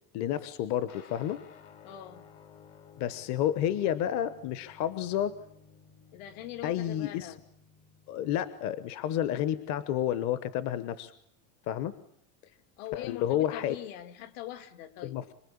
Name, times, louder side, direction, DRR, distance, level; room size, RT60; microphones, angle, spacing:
voice 1, 0.1-1.4 3.0-5.4 6.6-7.3 8.1-11.1 11.7-12.0 12.9-13.8 15.0-15.3, left 11 dB, 40° left, 14 dB, 1.2 m, -30 dB
sound 1, 0.9-8.7, left 6 dB, 85° left, 4.8 m, -55 dB
voice 2, 1.8-2.3 6.1-7.4 12.8-15.3, left 13 dB, 70° left, 9 dB, 2.7 m, -42 dB
27.0 x 21.0 x 8.7 m, 0.74 s
cardioid pair, 160°, 42 cm